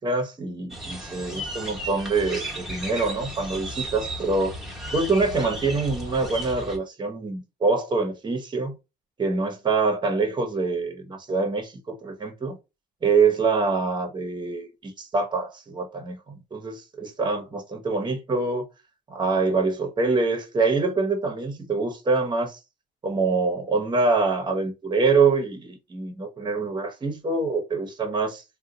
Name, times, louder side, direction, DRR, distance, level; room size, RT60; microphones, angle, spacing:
voice 1, 0.0-4.6 4.9-8.8 9.2-12.5 13.0-18.6 19.1-22.6 23.0-28.4, right 4 dB, 25° right, 0.9 m, -25 dB
sound 1, 0.7-6.8, right 1 dB, ahead, 1.1 m, -35 dB
2.8 x 2.2 x 3.7 m
cardioid pair, 110°, 17 cm